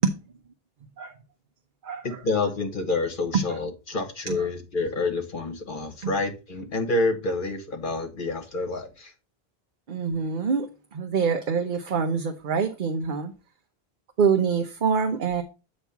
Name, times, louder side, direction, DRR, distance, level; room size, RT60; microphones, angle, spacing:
voice 1, 2.0-9.1, left 3 dB, 55° left, 1.4 m, -28 dB
voice 2, 9.9-13.3 14.2-15.4, right 6 dB, 55° right, 0.8 m, -25 dB
8.1 x 3.1 x 5.7 m
omnidirectional pair, 1.0 m